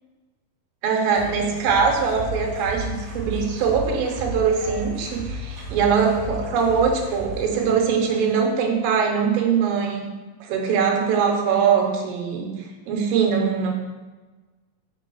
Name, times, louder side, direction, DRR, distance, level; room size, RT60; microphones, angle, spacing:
voice 1, 0.8-10.1 10.4-12.6 12.9-13.7, right 6 dB, 90° right, 2 dB, 2.5 m, -22 dB
sound 1, 1.1-8.4, equal, 40° right, 0.9 m, -34 dB
6.1 x 3.7 x 5.3 m, 1.2 s
omnidirectional pair, 3.9 m